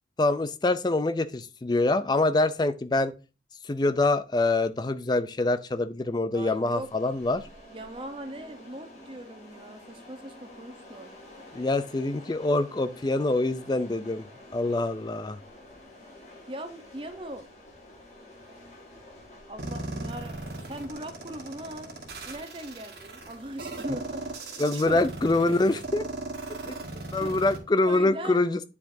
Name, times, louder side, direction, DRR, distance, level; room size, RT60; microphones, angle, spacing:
voice 1, 0.2-3.1 3.6-7.5 11.5-14.3 14.5-15.4 24.6-26.1 26.7-26.8 27.1-28.7, left 2 dB, 25° left, 0.4 m, -25 dB
voice 2, 6.3-6.9 7.7-11.1 16.5-17.5 19.5-25.0 27.2-27.4 27.8-28.5, right 1 dB, 30° right, 0.8 m, -40 dB
sound 1, 6.5-24.5, left 1 dB, 40° left, 2.0 m, -50 dB
sound 2, 19.6-27.6, right 2 dB, 70° right, 1.6 m, -38 dB
9.6 x 4.5 x 2.7 m
head